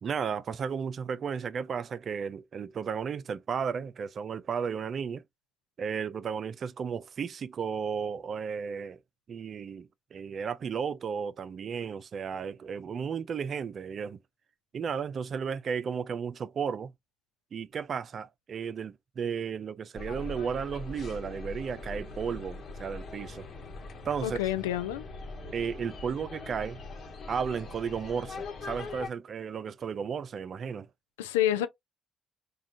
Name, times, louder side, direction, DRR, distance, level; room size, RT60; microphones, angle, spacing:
voice 1, 0.0-5.2 5.8-9.0 9.3-14.2 14.7-16.9 17.5-23.5 24.0-24.4 25.5-26.8 27.3-30.9, right 6 dB, 55° right, 0.3 m, -34 dB
sound 1, 20.0-29.1, left 3 dB, 60° left, 1.0 m, -42 dB
voice 2, 24.2-25.0 31.2-31.7, left 12 dB, 85° left, 0.3 m, -28 dB
3.6 x 2.2 x 2.5 m
hypercardioid pair, 45°, 0 cm